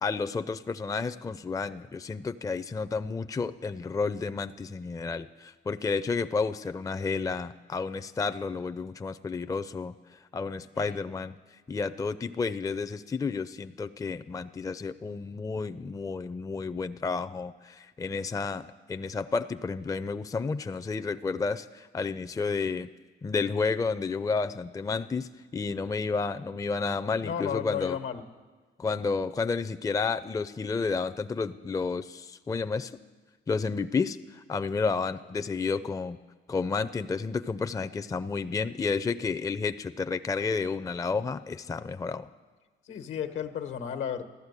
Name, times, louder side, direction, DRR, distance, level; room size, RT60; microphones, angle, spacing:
voice 1, 0.0-11.3 11.7-22.9 23.2-28.0 28.8-32.9 33.5-36.2 36.5-42.3, left 4 dB, 15° left, 12 dB, 0.5 m, -31 dB
voice 2, 27.2-28.2 42.9-44.2, left 8 dB, 75° left, 8 dB, 1.3 m, -33 dB
14.5 x 12.0 x 8.2 m, 1.3 s
cardioid pair, 90°, 20 cm